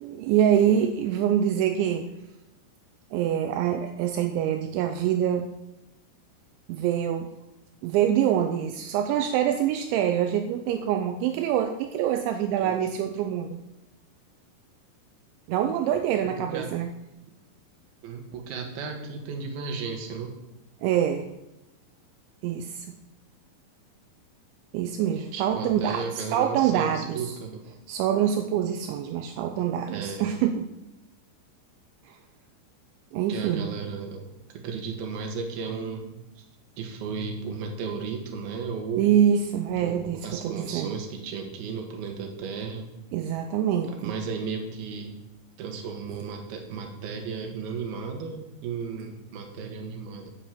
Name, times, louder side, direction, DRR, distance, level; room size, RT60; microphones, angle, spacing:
voice 1, 0.0-2.1 3.1-5.5 6.7-7.3 7.8-13.6 15.5-16.9 20.8-21.3 22.4-23.0 24.7-27.4 27.9-30.7 32.1-32.2 33.1-33.8 39.0-41.0 43.1-44.1, right 9 dB, 85° right, 6 dB, 2.9 m, -25 dB
voice 2, 16.4-16.8 18.0-20.4 25.3-27.6 29.9-30.2 33.1-34.2 34.5-36.4 36.8-39.1 39.8-42.9 43.9-45.1 45.6-50.3, right 5 dB, 60° right, 3 dB, 3.0 m, -34 dB
8.2 x 7.3 x 7.7 m, 0.95 s
omnidirectional pair, 5.5 m